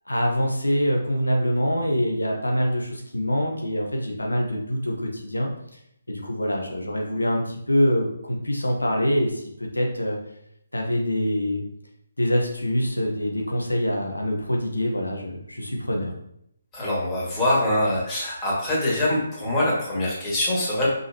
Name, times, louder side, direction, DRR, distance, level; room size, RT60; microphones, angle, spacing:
voice 1, 0.1-5.5 6.1-10.2 10.7-11.6 12.2-16.1, equal, 85° left, 0 dB, 1.3 m, -25 dB
voice 2, 16.7-20.9, left 1 dB, 15° left, -6 dB, 2.4 m, -24 dB
5.8 x 5.5 x 3.1 m, 0.75 s
figure-of-eight pair, 140°, 0 cm